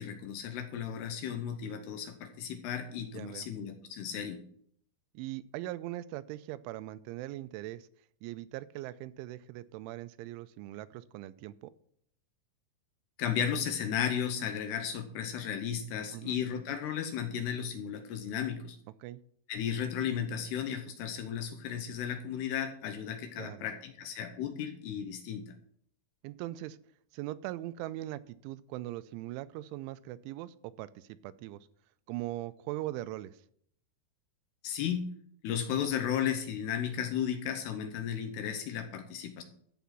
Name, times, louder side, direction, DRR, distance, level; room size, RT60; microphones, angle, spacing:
voice 1, 0.0-4.4 13.2-18.8 19.5-25.5 34.6-35.1 35.4-39.4, left 8 dB, 75° left, 7 dB, 2.6 m, -34 dB
voice 2, 3.1-3.5 5.1-7.9 8.2-11.7 16.1-16.4 19.0-19.2 23.4-23.7 26.2-26.8 27.1-31.7 32.1-33.4, right 15 dB, 90° right, 15 dB, 3.0 m, -40 dB
14.0 x 5.1 x 5.9 m, 0.65 s
omnidirectional pair, 5.4 m